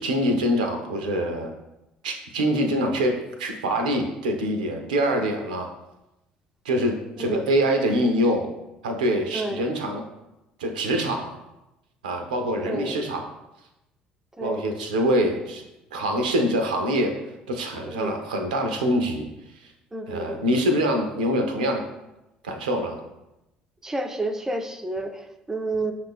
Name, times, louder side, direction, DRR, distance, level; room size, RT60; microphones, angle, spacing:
voice 1, 0.0-1.5 2.0-5.7 6.6-8.5 8.8-10.0 10.6-11.4 12.0-13.3 14.4-15.6 15.9-17.1 17.5-19.2 19.6-19.7 20.1-21.8 22.4-23.0, equal, 75° right, 4 dB, 0.5 m, -24 dB
voice 2, 7.2-7.5 9.3-9.7 12.6-13.0 14.4-14.6 17.9-18.1 19.9-20.4 23.8-25.9, right 2 dB, 10° right, 6 dB, 0.4 m, -30 dB
5.4 x 2.5 x 3.4 m, 0.94 s
figure-of-eight pair, 55°, 4 cm